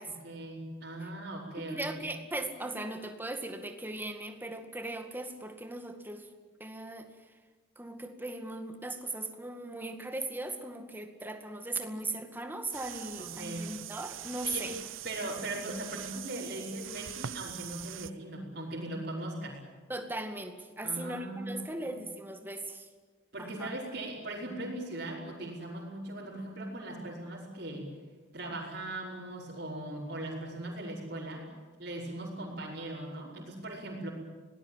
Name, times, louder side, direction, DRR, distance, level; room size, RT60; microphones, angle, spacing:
voice 1, 0.0-2.0 13.2-13.7 14.4-14.7 15.0-19.6 20.8-22.0 23.3-27.9 28.3-31.5 31.8-34.1, right 1 dB, 50° right, -8 dB, 5.7 m, -39 dB
voice 2, 1.6-6.3 6.6-7.1 7.8-14.7 19.9-22.9 23.4-23.7 32.4-32.5, right 2 dB, 10° right, 5 dB, 2.0 m, -38 dB
sound 1, 12.7-18.1, right 11 dB, 90° right, 0.7 m, -43 dB
25.5 x 19.0 x 9.0 m, 1.4 s
head